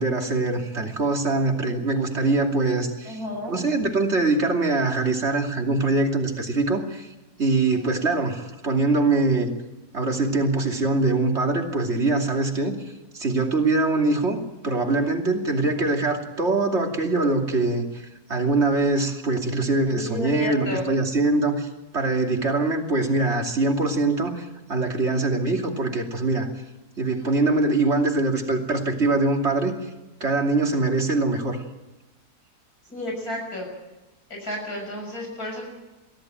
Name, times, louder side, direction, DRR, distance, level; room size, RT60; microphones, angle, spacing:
voice 1, 0.0-3.2 3.5-7.1 7.4-9.5 9.9-14.4 14.6-21.7 21.9-26.5 27.0-29.9 30.2-31.6, right 2 dB, 45° right, 2 dB, 3.1 m, -23 dB
voice 2, 3.0-3.6 19.9-20.9 32.9-33.7 34.3-35.7, left 1 dB, 65° left, 1 dB, 6.9 m, -31 dB
24.0 x 15.5 x 9.1 m, 1.1 s
omnidirectional pair, 1.7 m